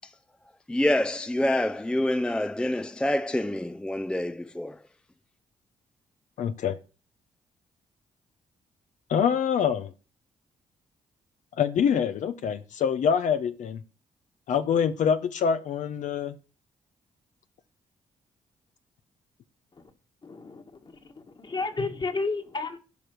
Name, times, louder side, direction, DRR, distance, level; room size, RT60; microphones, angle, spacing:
voice 1, 0.7-4.8, left 1 dB, 5° left, 0.5 m, -27 dB
voice 2, 6.4-6.8 9.1-9.9 11.6-13.8 14.5-16.3, left 7 dB, 70° left, 0.7 m, -25 dB
voice 3, 20.2-21.0 21.4-22.8, left 3 dB, 35° left, 1.8 m, -31 dB
12.0 x 5.1 x 7.8 m
cardioid pair, 75°, 13 cm